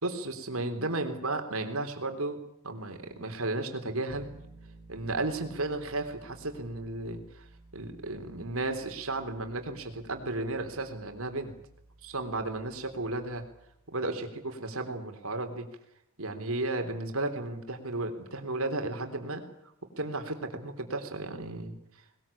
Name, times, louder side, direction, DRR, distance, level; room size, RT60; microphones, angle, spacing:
voice 1, 0.0-2.4 2.6-4.3 4.9-7.5 7.7-11.5 12.0-13.4 13.9-15.7 16.2-19.4 20.0-21.7, right 2 dB, 80° right, 6 dB, 3.7 m, -34 dB
Bass guitar, 4.1-14.0, right 2 dB, 50° right, 4.2 m, -55 dB
21.0 x 20.5 x 8.6 m, 0.76 s
head